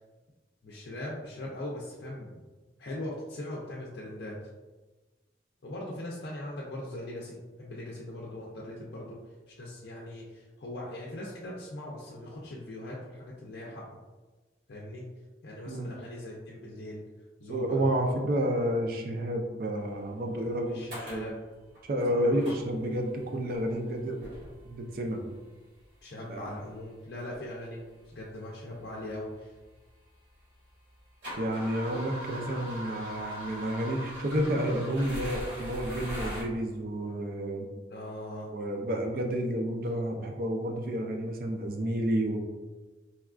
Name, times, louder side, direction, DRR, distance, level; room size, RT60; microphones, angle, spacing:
voice 1, 0.6-2.5 2.8-4.4 5.6-9.2 9.5-13.9 14.7-15.1 15.4-17.0 17.4-17.8 20.6-21.4 22.1-22.6 26.0-29.5 32.8-33.0 37.9-38.5, left 1 dB, 65° left, -4 dB, 0.5 m, -40 dB
voice 2, 17.5-20.8 21.1-21.3 21.9-24.3 24.7-25.2 26.3-26.5 31.4-37.7 38.5-42.4, right 1 dB, 50° right, 3 dB, 0.4 m, -30 dB
sound 1, 20.4-20.5 20.9-21.3 21.7-22.0 22.4-23.0 23.5-23.8 24.2-24.9 25.8-25.9 26.8-26.9 27.3-27.4 28.1-28.2 28.4-30.3 30.7-36.4, equal, 70° right, 1.3 m, -40 dB
4.2 x 2.3 x 2.4 m, 1.2 s
head